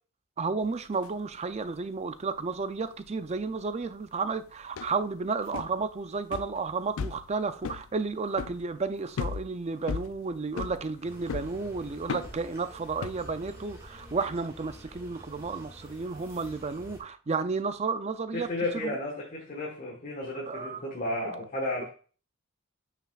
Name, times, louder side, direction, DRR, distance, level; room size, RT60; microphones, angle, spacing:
voice 1, 0.4-18.5 18.7-19.0 20.4-20.8 21.2-21.3, right 4 dB, 30° right, 0.4 m, -32 dB
sound 1, 0.6-1.1 1.3-1.8 2.2-14.2, left 6 dB, 65° left, 0.4 m, -38 dB
sound 2, 11.0-17.0, equal, 15° right, 1.9 m, -48 dB
voice 2, 18.3-21.9, left 1 dB, 35° left, 1.3 m, -33 dB
8.9 x 5.9 x 2.4 m
head